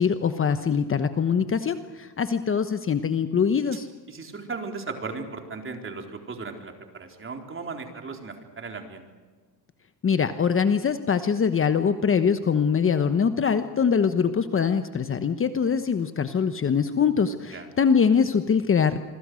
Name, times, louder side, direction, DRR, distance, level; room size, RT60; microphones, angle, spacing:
voice 1, 0.0-3.9 10.0-19.0, left 6 dB, 30° left, 9 dB, 1.1 m, -23 dB
voice 2, 4.1-9.0 17.5-17.7, right 4 dB, 30° right, 4 dB, 4.1 m, -36 dB
26.5 x 24.5 x 6.4 m, 1.4 s
cardioid pair, 120°, 40 cm